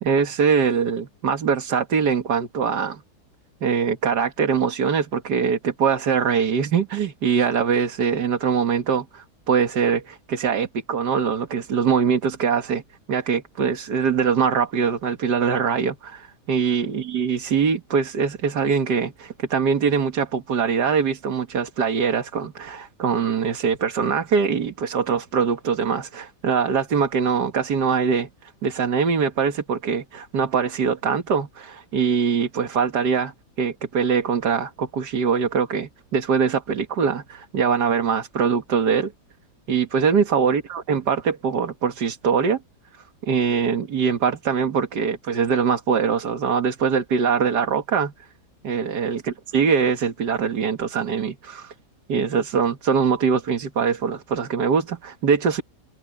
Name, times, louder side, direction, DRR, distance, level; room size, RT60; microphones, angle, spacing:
voice 1, 0.0-3.0 3.6-12.8 13.1-39.1 39.7-42.6 43.2-48.1 48.6-49.2 49.5-51.7 52.1-55.6, right 6 dB, 90° right, 2.2 m, -22 dB
omnidirectional pair, 1.7 m